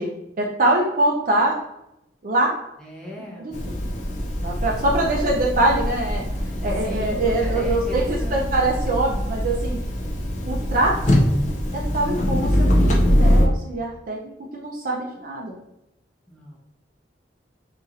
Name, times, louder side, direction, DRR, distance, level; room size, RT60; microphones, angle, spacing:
voice 1, 0.0-1.6 2.2-2.6 3.4-3.7 4.4-6.2 6.6-9.8 10.5-11.3 11.9-12.5 12.8-15.6, right 2 dB, 45° right, -2 dB, 0.5 m, -23 dB
voice 2, 2.8-3.5 4.8-5.0 6.6-8.5 16.3-16.6, equal, 5° left, -4 dB, 0.8 m, -37 dB
sound 1, 3.5-13.5, equal, 40° left, 0.5 m, -23 dB
4.0 x 3.0 x 2.5 m, 0.83 s
head